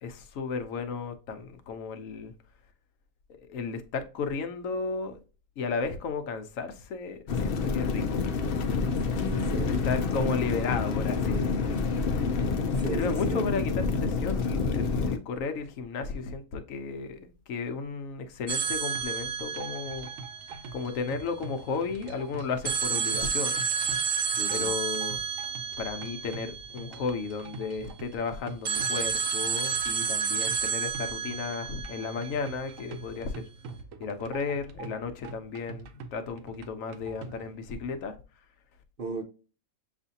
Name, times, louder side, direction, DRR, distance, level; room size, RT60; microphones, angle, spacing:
voice 1, 0.0-2.3 3.4-5.2 5.6-8.2 9.7-11.8 12.9-20.1 20.7-23.6 24.5-25.2 25.8-33.4 34.0-38.1, left 4 dB, 75° left, 1.0 m, -34 dB
sound 1, 7.3-15.2, left 4 dB, 60° left, 0.6 m, -28 dB
voice 2, 9.1-9.7 10.2-10.3 12.8-13.5 24.4-24.8 39.0-39.2, right 2 dB, 55° right, 0.7 m, -36 dB
sound 2, 18.5-21.4 22.6-27.6 28.7-32.8, right 6 dB, 90° right, 0.4 m, -31 dB
sound 3, 18.7-38.0, right 4 dB, 70° right, 0.9 m, -45 dB
6.8 x 2.5 x 2.7 m
omnidirectional pair, 1.4 m